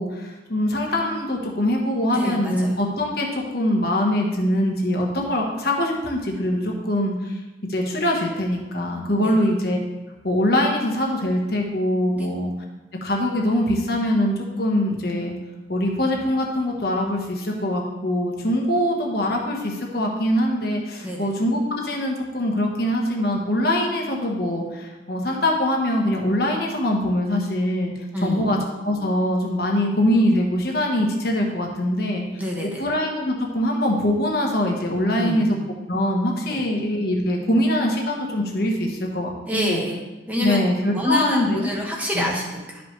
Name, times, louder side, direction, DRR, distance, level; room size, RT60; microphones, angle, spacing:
voice 1, 0.0-7.4 7.7-9.8 10.2-12.5 13.0-15.3 15.7-27.9 28.2-28.6 28.8-35.6 35.9-39.8 40.4-41.6 42.1-42.3, left 1 dB, 55° left, 0 dB, 1.2 m, -23 dB
voice 2, 2.1-2.8 9.2-9.3 12.1-12.3 21.0-21.3 28.1-28.5 32.4-32.8 35.1-35.5 36.5-36.6 39.5-39.9 40.3-40.6 40.9-42.8, left 1 dB, 10° right, -3 dB, 1.2 m, -26 dB
11.5 x 5.2 x 3.3 m, 1.1 s
head